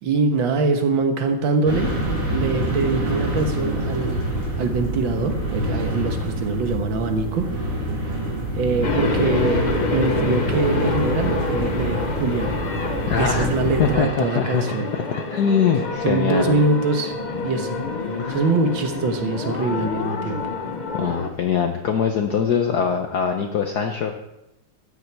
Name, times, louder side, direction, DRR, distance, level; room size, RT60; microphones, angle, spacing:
voice 1, 0.0-1.9 2.3-4.3 4.6-7.5 8.6-12.7 13.1-14.9 16.0-17.7 18.1-20.5, right 3 dB, 65° right, 5 dB, 2.0 m, -23 dB
sound 1, 1.6-14.0, right 1 dB, 85° right, 4.4 m, -26 dB
sound 2, 8.8-21.3, left 4 dB, 80° left, 0.4 m, -28 dB
voice 2, 13.1-13.5 13.8-14.6 15.3-16.6 18.2-18.4 20.9-24.1, left 7 dB, 60° left, 4 dB, 1.3 m, -22 dB
13.5 x 9.8 x 4.6 m, 0.90 s
omnidirectional pair, 2.3 m